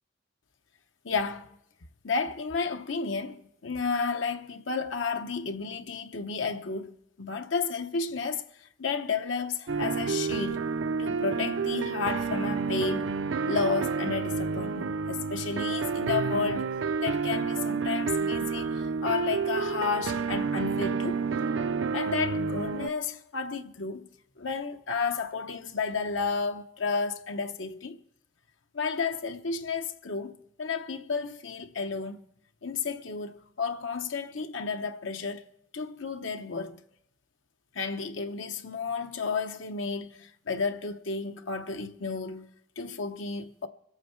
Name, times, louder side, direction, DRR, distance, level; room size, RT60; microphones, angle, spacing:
voice 1, 1.0-1.6 2.0-10.7 11.0-13.2 13.5-16.7 17.0-21.3 21.9-24.1 24.4-28.0 28.7-32.2 32.6-35.4 35.7-36.8 37.7-43.7, left 4 dB, 85° left, 0.9 m, -32 dB
sound 1, 9.7-22.9, right 5 dB, 75° right, 0.5 m, -29 dB
25.0 x 8.6 x 4.5 m
head